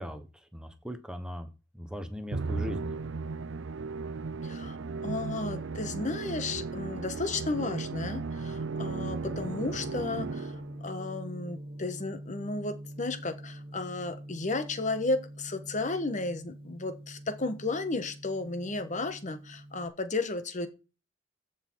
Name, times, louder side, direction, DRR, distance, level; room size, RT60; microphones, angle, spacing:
voice 1, 0.0-1.5 1.7-3.1, equal, 5° right, 9 dB, 1.1 m, -39 dB
Musical instrument, 2.3-10.8, right 4 dB, 70° right, 0.6 m, -35 dB
voice 2, 4.4-4.8 5.0-20.7, left 3 dB, 40° left, 11 dB, 1.2 m, -33 dB
Gong, 9.2-19.9, right 1 dB, 30° right, 2.2 m, -44 dB
14.5 x 6.2 x 4.6 m, 0.32 s
head